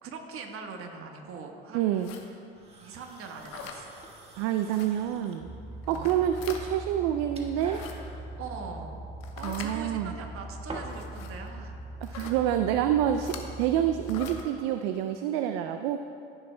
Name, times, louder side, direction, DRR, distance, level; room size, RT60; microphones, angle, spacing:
voice 1, 0.0-2.1 2.8-4.0 5.9-6.2 8.4-9.0 9.4-11.8 12.1-12.3, right 5 dB, 45° right, 3 dB, 1.3 m, -42 dB
voice 2, 1.7-2.1 4.4-5.5 5.9-7.8 9.4-10.1 12.1-16.0, right 10 dB, 65° right, 7 dB, 0.4 m, -27 dB
sound 1, 1.9-2.2 3.4-3.8 4.7-4.9 5.8-6.6 7.5-7.9 9.2-9.7 10.9-11.3 12.0-12.4 13.1-13.4 14.0-14.4, left 7 dB, 60° left, 1.0 m, -43 dB
sound 2, 2.5-11.1, right 2 dB, 20° right, 1.4 m, -48 dB
sound 3, 5.4-14.4, right 1 dB, ahead, 0.8 m, -41 dB
15.5 x 6.9 x 2.2 m, 2.6 s
hypercardioid pair, 75°, 30 cm